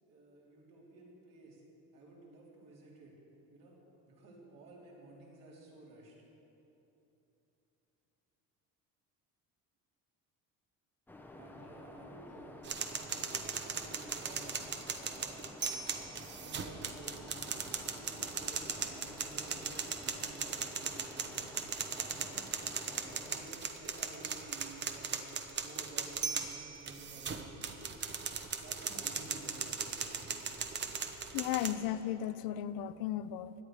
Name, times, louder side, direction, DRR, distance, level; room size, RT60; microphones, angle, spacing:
voice 1, 0.0-1.6 1.9-3.1 3.5-3.8 4.0-6.2 11.3-12.6 12.9-14.5 14.9-15.4 16.4-17.3 17.8-19.7 20.0-21.5 21.9-22.5 22.9-25.2 25.6-28.0 28.5-30.5, right 2 dB, 65° right, -4 dB, 3.8 m, -53 dB
sound 1, 11.1-23.5, left 2 dB, 5° left, 0.6 m, -52 dB
sound 2, 12.6-31.7, right 6 dB, 30° right, 0.7 m, -38 dB
voice 2, 31.3-33.6, left 12 dB, 75° left, 14 dB, 0.6 m, -35 dB
17.0 x 11.5 x 4.9 m, 3.0 s
cardioid pair, 170°, 36 cm